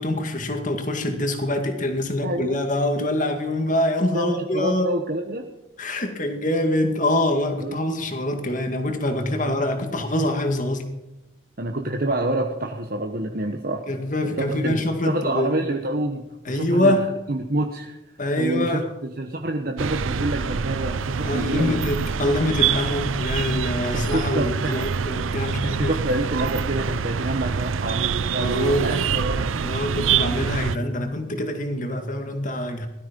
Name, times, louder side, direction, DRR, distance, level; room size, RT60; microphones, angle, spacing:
voice 1, 0.0-4.9 5.8-10.9 13.9-15.6 16.5-17.1 18.2-18.9 21.2-25.9 28.3-29.0 29.6-32.9, left 1 dB, 40° left, 5 dB, 2.1 m, -25 dB
voice 2, 2.2-2.6 4.1-5.5 7.6-7.8 9.5-9.6 11.6-13.8 14.2-17.0 17.3-18.0 18.4-21.9 24.0-24.8 25.3-29.7, right 1 dB, 45° right, 3 dB, 1.1 m, -27 dB
sound 1, 19.8-30.8, right 6 dB, 90° right, 0.6 m, -25 dB
17.5 x 13.0 x 5.4 m, 0.96 s
head